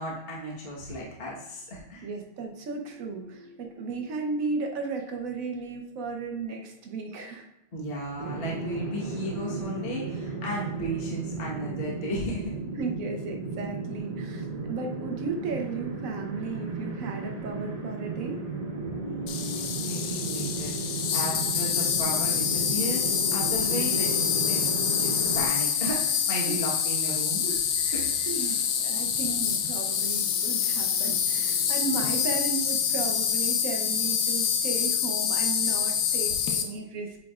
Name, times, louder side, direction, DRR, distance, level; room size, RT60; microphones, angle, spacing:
voice 1, 0.0-2.1 7.7-12.5 19.0-24.7 25.0-28.5, equal, 35° left, -4 dB, 1.2 m, -35 dB
voice 2, 2.0-7.5 12.8-18.3 26.5-26.6 27.8-37.2, right 4 dB, 60° right, 2 dB, 0.9 m, -35 dB
sound 1, 8.2-25.5, right 3 dB, 25° right, 0.9 m, -34 dB
Insect, 19.3-36.6, left 7 dB, 70° left, 1.3 m, -26 dB
8.3 x 4.8 x 2.4 m, 0.87 s
omnidirectional pair, 2.3 m